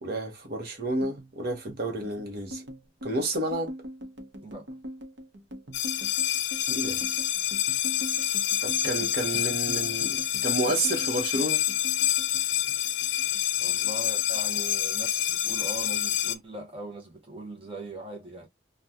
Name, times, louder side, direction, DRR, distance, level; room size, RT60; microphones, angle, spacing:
voice 1, 0.0-2.6 3.0-3.7 6.7-7.0 8.6-11.6, right 2 dB, 60° right, 1.0 m, -30 dB
sound 1, 1.0-13.4 13.7-14.7 15.0-15.4 15.7-16.4, equal, 85° right, 0.8 m, -43 dB
sound 2, 5.7-16.4, left 12 dB, 80° left, 0.4 m, -27 dB
voice 2, 13.6-18.5, right 2 dB, 30° right, 0.8 m, -40 dB
2.7 x 2.3 x 3.5 m
head